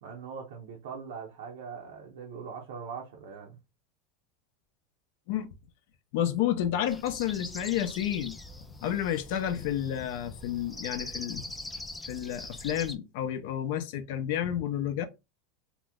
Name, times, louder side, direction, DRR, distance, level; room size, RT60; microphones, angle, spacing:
voice 1, 0.0-3.6, right 6 dB, 85° right, 0.7 m, -41 dB
voice 2, 6.1-8.4 8.8-11.5 12.1-15.0, left 11 dB, 65° left, 0.5 m, -30 dB
sound 1, 6.9-13.0, left 2 dB, 5° left, 0.3 m, -42 dB
2.9 x 2.1 x 3.5 m
supercardioid pair, 145°, 0 cm